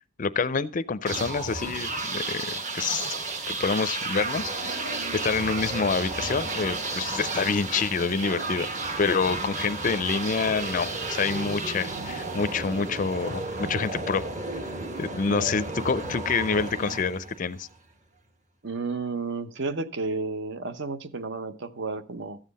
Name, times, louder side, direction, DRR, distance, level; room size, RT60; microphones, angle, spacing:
voice 1, 0.2-3.1 3.5-4.8 5.1-8.7 9.0-14.3 15.0-17.7, left 5 dB, 40° left, 0.4 m, -27 dB
sound 1, 1.0-17.8, right 2 dB, 35° right, 1.2 m, -32 dB
voice 2, 18.6-22.4, right 3 dB, 55° right, 0.8 m, -32 dB
13.5 x 7.5 x 4.1 m
head